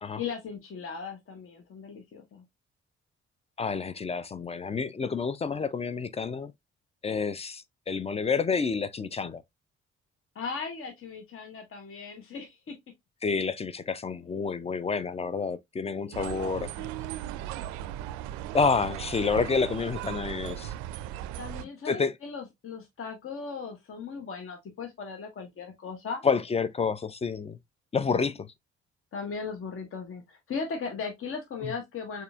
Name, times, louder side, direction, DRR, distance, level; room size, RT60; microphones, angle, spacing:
voice 1, 0.1-2.4 10.3-12.8 16.0-16.9 21.4-26.2 29.1-32.2, left 5 dB, 40° left, 1.0 m, -38 dB
voice 2, 3.6-6.5 7.0-9.4 13.2-16.7 18.5-20.7 21.9-22.1 26.2-27.6 27.9-28.5 31.6-31.7, left 5 dB, 20° left, 0.4 m, -29 dB
sound 1, 16.1-21.7, right 12 dB, 60° right, 0.4 m, -37 dB
6.6 x 2.6 x 2.3 m
figure-of-eight pair, 40°, 33 cm